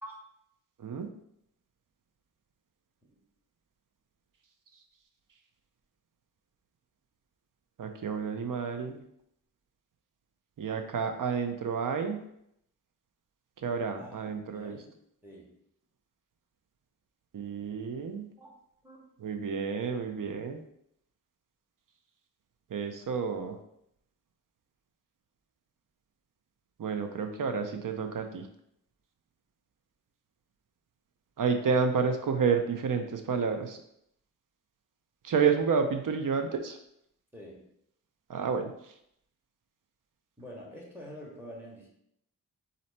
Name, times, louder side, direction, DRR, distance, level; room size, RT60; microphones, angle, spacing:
voice 1, 7.8-9.0 10.6-12.2 13.6-14.8 17.3-18.3 19.2-20.6 22.7-23.6 26.8-28.5 31.4-33.8 35.2-36.8 38.3-38.9, right 5 dB, 70° right, 6 dB, 0.7 m, -30 dB
voice 2, 14.0-14.9 15.2-15.5 18.4-18.5 18.8-19.2 37.3-37.7 40.4-41.9, equal, 5° right, -3 dB, 1.8 m, -47 dB
4.2 x 2.8 x 4.2 m, 0.74 s
cardioid pair, 45°, 34 cm